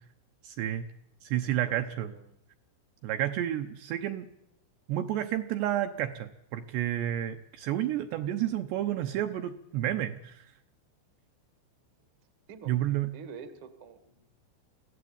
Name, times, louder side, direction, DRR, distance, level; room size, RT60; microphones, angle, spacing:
voice 1, 0.4-0.9 1.2-2.1 3.0-4.3 4.9-10.5 12.7-13.1, right 12 dB, 75° right, 7 dB, 2.6 m, -30 dB
voice 2, 1.3-2.2 12.5-12.8 13.1-14.3, right 5 dB, 55° right, 10 dB, 1.4 m, -48 dB
25.5 x 16.5 x 8.8 m, 0.80 s
omnidirectional pair, 5.8 m